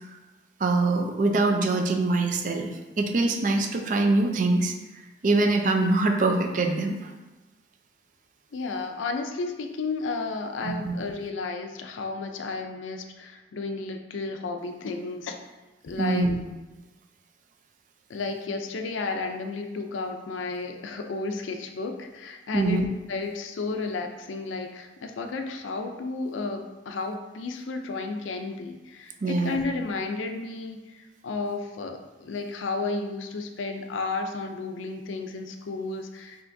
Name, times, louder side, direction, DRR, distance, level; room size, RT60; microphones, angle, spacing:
voice 1, 0.6-2.7 3.0-7.1 10.6-10.9 16.0-16.4 22.5-22.9 29.2-29.6, right 2 dB, 45° right, 4 dB, 0.4 m, -24 dB
voice 2, 8.5-15.5 15.8-16.3 18.1-22.8 23.1-36.4, left 3 dB, 90° left, 5 dB, 0.4 m, -32 dB
5.7 x 2.9 x 2.6 m, 1.1 s
head